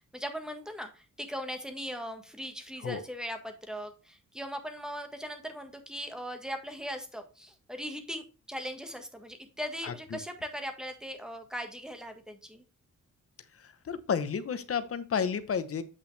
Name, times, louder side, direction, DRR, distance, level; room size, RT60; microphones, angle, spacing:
voice 1, 0.0-12.6, equal, ahead, 6 dB, 1.5 m, -39 dB
voice 2, 9.8-10.2 13.9-15.8, left 6 dB, 50° left, 12 dB, 0.9 m, -31 dB
8.6 x 5.6 x 3.3 m, 0.35 s
wide cardioid pair, 125°, 31 cm